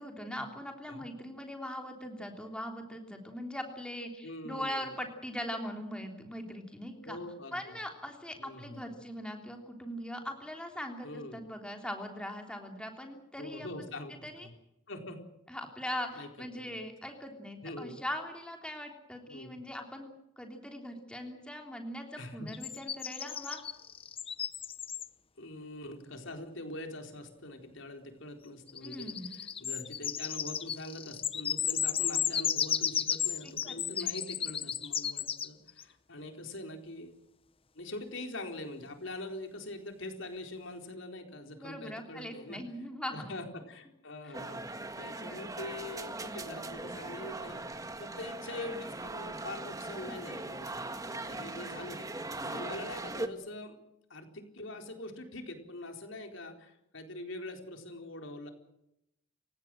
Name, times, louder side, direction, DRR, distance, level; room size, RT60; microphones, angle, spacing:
voice 1, 0.0-7.2 7.5-13.9 14.2-14.5 15.5-23.6 28.8-29.4 33.4-34.1 41.6-43.3 44.3-44.4 45.2-45.5, equal, 5° left, 3 dB, 3.3 m, -41 dB
voice 2, 4.2-4.9 7.0-7.8 8.4-8.9 11.0-11.5 13.4-14.5 14.9-15.3 16.1-16.3 16.5-16.8 17.6-18.0 19.3-19.6 22.1-22.5 25.4-37.1 37.7-42.6 43.1-44.7 45.0-53.8 54.1-58.5, left 1 dB, 75° left, 4 dB, 4.3 m, -44 dB
sound 1, 22.5-25.1 28.7-35.8, left 9 dB, 30° left, 0.8 m, -34 dB
sound 2, 44.3-53.3, right 2 dB, 15° right, 1.6 m, -40 dB
28.5 x 17.0 x 7.7 m, 0.84 s
head